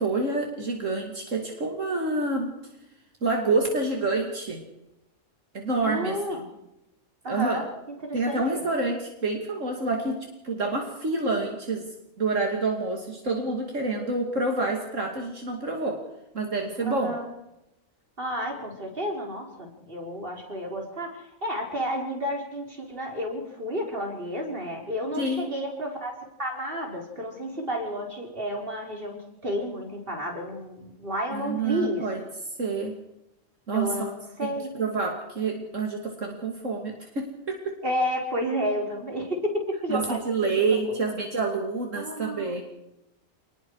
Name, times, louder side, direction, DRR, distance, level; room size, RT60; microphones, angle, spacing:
voice 1, 0.0-2.5 3.2-4.6 5.5-6.2 7.3-7.6 8.1-10.2 10.4-16.0 16.3-17.2 25.2-25.5 31.3-32.2 32.6-32.9 33.7-34.1 34.7-37.8 39.9-42.6, right 3 dB, 70° right, 2 dB, 2.9 m, -28 dB
voice 2, 5.8-6.4 7.2-7.6 8.0-8.6 16.8-17.3 18.2-26.1 26.4-32.1 33.7-34.7 37.8-41.1 42.0-42.6, equal, 45° right, 1 dB, 4.8 m, -31 dB
27.5 x 20.5 x 4.9 m, 0.89 s
omnidirectional pair, 1.4 m